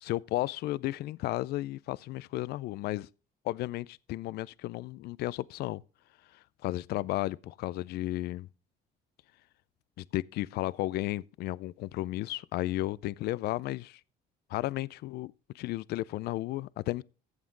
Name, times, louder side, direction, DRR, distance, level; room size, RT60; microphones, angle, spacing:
voice 1, 0.0-3.1 3.4-5.8 6.6-8.5 10.0-14.0 14.5-17.0, left 16 dB, 70° left, 0.4 m, -33 dB
14.5 x 7.3 x 3.8 m
cardioid pair, 110°, 17 cm